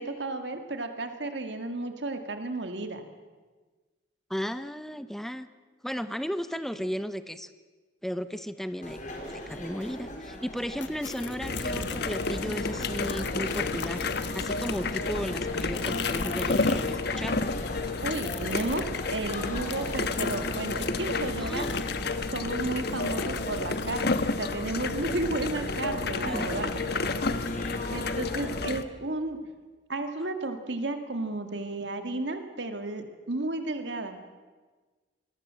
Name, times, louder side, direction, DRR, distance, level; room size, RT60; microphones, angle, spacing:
voice 1, 0.0-3.1 18.0-21.7 22.3-26.7 27.9-29.4 29.9-34.2, right 2 dB, 70° right, 7 dB, 2.1 m, -33 dB
voice 2, 4.3-5.5 5.8-7.5 8.0-14.1 14.3-17.4 21.4-21.8 26.3-26.5, equal, ahead, 11 dB, 0.9 m, -35 dB
sound 1, 8.8-28.6, left 1 dB, 45° left, 4.6 m, -40 dB
sound 2, 10.8-12.4 12.8-17.0 17.2-21.0 21.5-24.1, left 6 dB, 80° left, 1.4 m, -41 dB
sound 3, 11.4-28.8, left 3 dB, 60° left, 1.3 m, -31 dB
27.0 x 22.0 x 7.6 m, 1.4 s
head